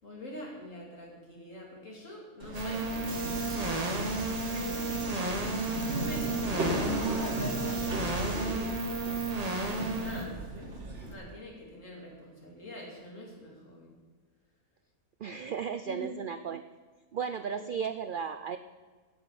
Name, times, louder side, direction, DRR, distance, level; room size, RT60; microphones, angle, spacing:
voice 1, 0.0-5.4 5.8-8.8 9.5-10.4 11.0-13.9 15.9-16.1 17.5-17.7, left 1 dB, 60° left, -2 dB, 3.3 m, -45 dB
Subway metro underground, 2.4-11.1, right 2 dB, 55° right, 2.0 m, -36 dB
sound 1, 2.5-10.2, right 2 dB, 30° right, 1.4 m, -33 dB
voice 2, 15.2-16.6 17.1-18.6, right 7 dB, 75° right, 10 dB, 0.4 m, -35 dB
10.0 x 7.9 x 8.9 m, 1.4 s
omnidirectional pair, 1.5 m